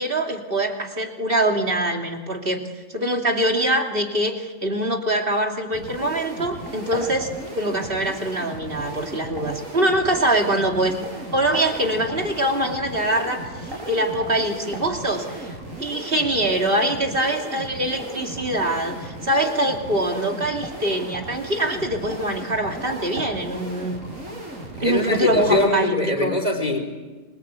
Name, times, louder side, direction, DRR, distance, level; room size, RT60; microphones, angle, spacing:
voice 1, 0.0-2.6 2.9-7.3 7.5-11.0 11.3-15.5 15.8-24.0 24.8-26.3, right 1 dB, 45° right, 2 dB, 3.0 m, -23 dB
sound 1, 5.7-25.7, right 1 dB, 85° right, 7.7 m, -36 dB
voice 2, 24.8-26.8, left 2 dB, 30° left, 5 dB, 4.2 m, -22 dB
28.0 x 24.0 x 8.3 m, 1.3 s
omnidirectional pair, 1.4 m